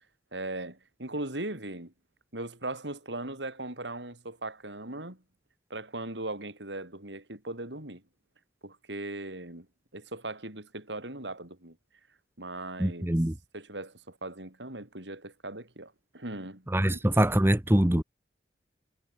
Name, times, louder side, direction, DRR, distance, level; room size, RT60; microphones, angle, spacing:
voice 1, 0.3-1.9 2.3-5.2 5.7-8.0 8.6-9.7 9.9-11.8 12.4-13.2 13.5-17.0, right 2 dB, 90° right, 6.1 m, -39 dB
voice 2, 12.8-13.3 16.7-18.0, right 1 dB, 15° right, 0.8 m, -23 dB
head